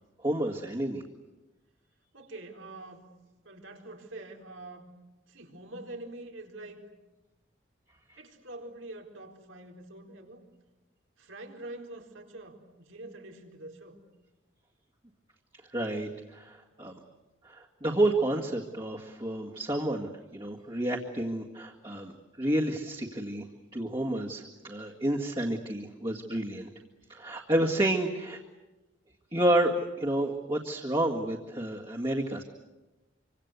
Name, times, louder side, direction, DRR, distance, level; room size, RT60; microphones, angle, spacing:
voice 1, 0.2-1.0 8.1-8.2 15.7-17.0 17.4-22.1 22.4-23.5 23.7-26.7 27.1-28.4 29.3-32.4, right 1 dB, 25° right, -2 dB, 2.0 m, -30 dB
voice 2, 2.1-3.0 3.4-4.9 5.3-6.9 8.2-10.4 11.2-14.0, right 2 dB, 85° right, 2 dB, 4.4 m, -45 dB
26.5 x 25.5 x 8.2 m, 1.1 s
head